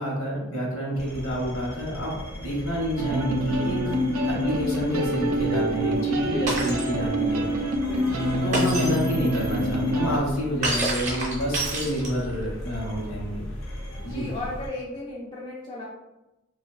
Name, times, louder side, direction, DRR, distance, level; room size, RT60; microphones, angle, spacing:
voice 1, 0.0-3.8 4.2-7.5 8.4-13.4 14.0-14.3, equal, 75° left, -3 dB, 0.9 m, -29 dB
sound 1, 0.9-14.7, equal, 90° left, 0.5 m, -38 dB
sound 2, 3.0-10.2, right 1 dB, 80° right, 0.3 m, -26 dB
voice 2, 6.2-6.8 7.9-8.4 14.0-15.8, left 2 dB, 25° left, -4 dB, 0.3 m, -36 dB
Shatter, 6.5-6.9 8.5-9.0 10.6-12.3, right 2 dB, 35° right, 0.6 m, -28 dB
2.4 x 2.1 x 2.3 m, 0.98 s
head